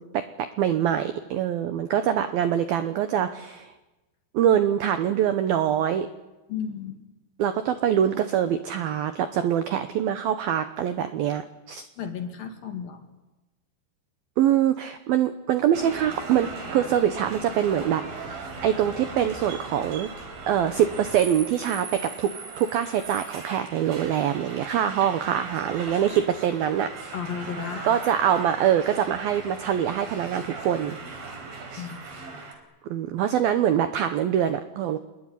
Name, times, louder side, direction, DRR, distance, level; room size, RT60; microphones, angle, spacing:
voice 1, 0.0-3.7 4.3-6.1 7.4-11.4 11.7-11.8 14.4-20.1 20.5-27.1 27.8-31.0 31.7-31.8 32.9-35.0, right 10 dB, 80° right, 9 dB, 2.1 m, -24 dB
voice 2, 6.5-7.0 12.0-13.1 27.1-28.0 31.8-32.5, left 7 dB, 55° left, 5 dB, 3.4 m, -34 dB
sound 1, 15.7-32.5, right 3 dB, 50° right, 5.6 m, -39 dB
27.0 x 21.5 x 9.9 m, 1.1 s
omnidirectional pair, 5.7 m